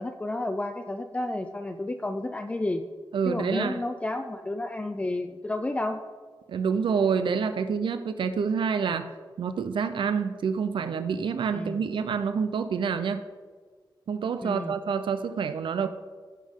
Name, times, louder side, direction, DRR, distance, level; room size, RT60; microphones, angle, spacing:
voice 1, 0.0-2.8 3.2-6.0 11.5-11.8 14.4-14.7, left 2 dB, 15° left, 6 dB, 0.4 m, -31 dB
voice 2, 3.1-3.8 6.5-9.1 9.4-13.2 14.1-15.9, right 6 dB, 80° right, 10 dB, 0.5 m, -27 dB
15.5 x 5.5 x 3.7 m, 1.5 s
wide cardioid pair, 135°, 8 cm